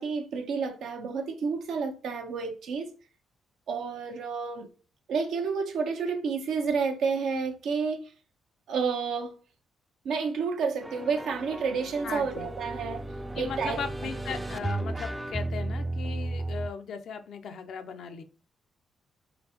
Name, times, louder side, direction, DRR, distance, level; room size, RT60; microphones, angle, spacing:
voice 1, 0.0-2.9 3.7-4.7 5.1-8.1 8.7-9.3 10.0-13.1 13.3-14.1, right 5 dB, 80° right, 0.8 m, -30 dB
sound 1, 10.8-16.7, right 2 dB, 15° right, 0.4 m, -34 dB
voice 2, 12.0-12.5 13.3-18.2, left 6 dB, 75° left, 0.6 m, -37 dB
4.0 x 3.2 x 2.9 m
cardioid pair, 70°, 0 cm